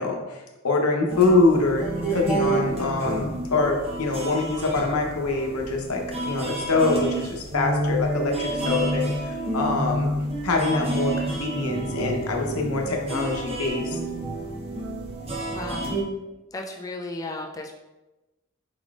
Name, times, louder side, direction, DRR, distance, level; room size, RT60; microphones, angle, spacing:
voice 1, 0.0-10.1 10.4-14.0, left 3 dB, 90° left, 1 dB, 0.8 m, -24 dB
sound 1, 1.1-16.0, right 1 dB, 25° right, 0.7 m, -29 dB
voice 2, 15.5-16.0 16.5-17.7, left 2 dB, 15° left, 0 dB, 0.4 m, -34 dB
4.9 x 3.8 x 2.4 m, 1.1 s
head